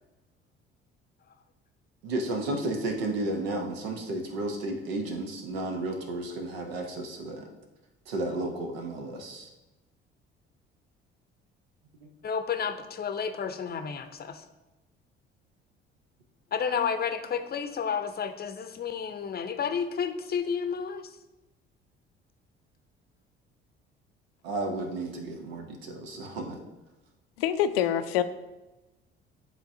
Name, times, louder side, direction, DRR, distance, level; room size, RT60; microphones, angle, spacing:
voice 1, 2.0-7.5 8.1-9.5 12.0-12.1 24.4-26.6, right 2 dB, 80° right, 3 dB, 0.9 m, -33 dB
voice 2, 12.2-14.5 16.5-21.2, left 6 dB, 35° left, 9 dB, 0.6 m, -31 dB
voice 3, 27.4-28.2, left 10 dB, 75° left, 11 dB, 0.5 m, -25 dB
10.0 x 3.6 x 2.7 m, 1.0 s
hypercardioid pair, 55°, 30 cm